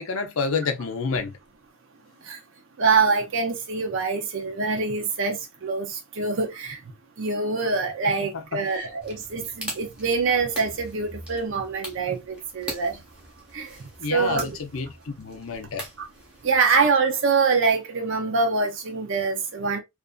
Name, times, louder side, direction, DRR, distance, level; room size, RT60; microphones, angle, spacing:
voice 1, 0.0-1.4 8.2-8.9 14.0-15.9, left 4 dB, 65° left, 0.6 m, -29 dB
voice 2, 2.8-6.8 7.2-13.0 13.5-13.8 14.1-14.6 16.0-16.1 16.4-19.8, right 4 dB, 60° right, 0.6 m, -24 dB
sound 1, 9.0-16.8, equal, 5° right, 1.0 m, -41 dB
2.5 x 2.5 x 2.2 m
head